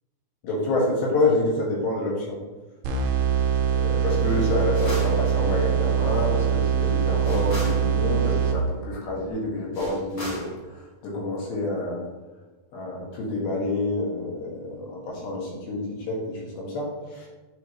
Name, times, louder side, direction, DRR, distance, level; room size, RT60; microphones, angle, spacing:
voice 1, 0.4-2.4 3.7-10.5 11.0-12.0 12.7-17.3, left 2 dB, 80° left, -3 dB, 3.4 m, -28 dB
sound 1, 2.8-8.9, right 8 dB, 90° right, 1.6 m, -23 dB
sound 2, 4.7-5.2 7.2-7.8 9.7-10.5, left 1 dB, 50° left, 1.0 m, -32 dB
8.1 x 4.6 x 3.0 m, 1.2 s
omnidirectional pair, 4.2 m